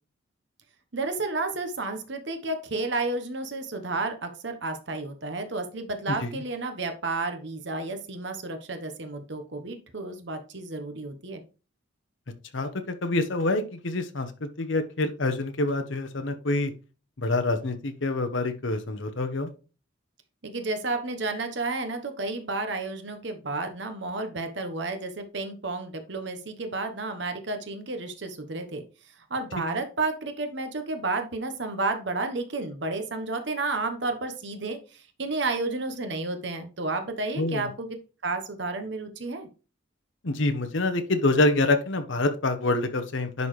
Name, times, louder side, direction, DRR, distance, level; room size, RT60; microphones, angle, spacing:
voice 1, 0.9-11.4 20.4-28.8 29.3-38.0 38.2-39.5, right 3 dB, 60° right, 6 dB, 1.0 m, -31 dB
voice 2, 6.1-6.4 12.5-16.7 17.2-19.5 29.7-29.8 37.4-37.7 40.2-43.5, left 2 dB, 70° left, 7 dB, 0.9 m, -26 dB
10.5 x 4.0 x 3.2 m, 0.34 s
head